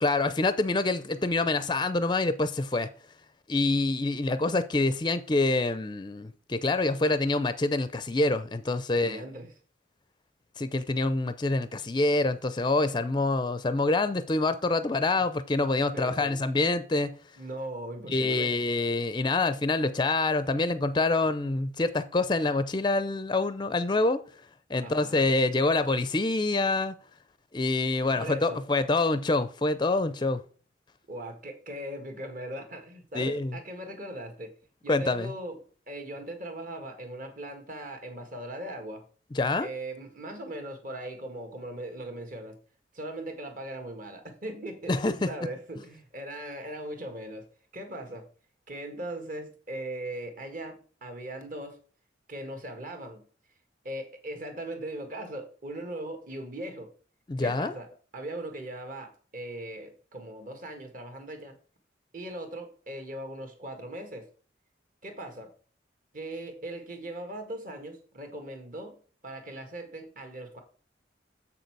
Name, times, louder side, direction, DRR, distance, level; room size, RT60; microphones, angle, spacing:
voice 1, 0.0-2.9 3.5-9.2 10.6-17.1 18.1-24.2 24.7-26.9 27.5-30.4 33.1-33.5 34.9-35.3 39.3-39.7 44.9-45.3 57.3-57.7, left 2 dB, 25° left, 0.5 m, -26 dB
voice 2, 8.9-9.5 15.1-15.2 15.9-16.4 17.4-18.5 24.8-25.3 28.2-28.6 31.1-34.5 34.8-35.6 35.9-39.0 39.6-42.6 42.9-47.4 47.7-48.3 48.7-51.8 52.3-53.2 53.8-56.9 57.4-57.9 58.1-61.5 62.1-64.3 65.0-65.5 66.1-69.0 69.2-70.6, right 1 dB, 45° right, 1.6 m, -39 dB
7.3 x 6.6 x 4.6 m
head